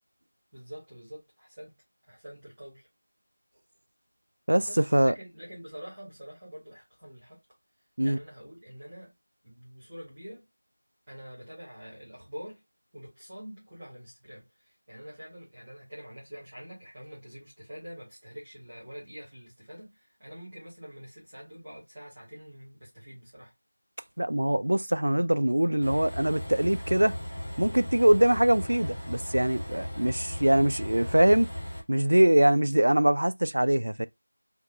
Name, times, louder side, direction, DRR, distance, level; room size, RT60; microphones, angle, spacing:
voice 1, 0.5-1.7 2.0-2.9 4.6-7.4 8.0-9.2 9.4-10.5 11.1-12.6 12.9-23.5, equal, 5° right, 1.1 m, -46 dB
voice 2, 4.5-5.2 8.0-8.2 24.2-27.2 27.6-31.5 31.9-34.1, right 1 dB, 90° right, 0.3 m, -23 dB
Train, 25.8-31.8, equal, 15° left, 0.8 m, -37 dB
3.6 x 2.6 x 2.4 m
figure-of-eight pair, 180°, 0 cm